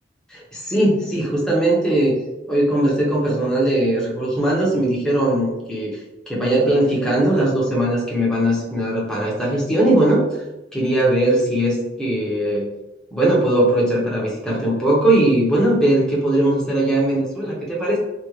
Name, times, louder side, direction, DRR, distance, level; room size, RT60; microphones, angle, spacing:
voice 1, 0.3-2.2 2.5-5.9 6.3-10.4 10.7-12.7 13.1-18.0, right 1 dB, 5° left, -5 dB, 0.8 m, -19 dB
3.5 x 2.4 x 3.1 m, 0.98 s
head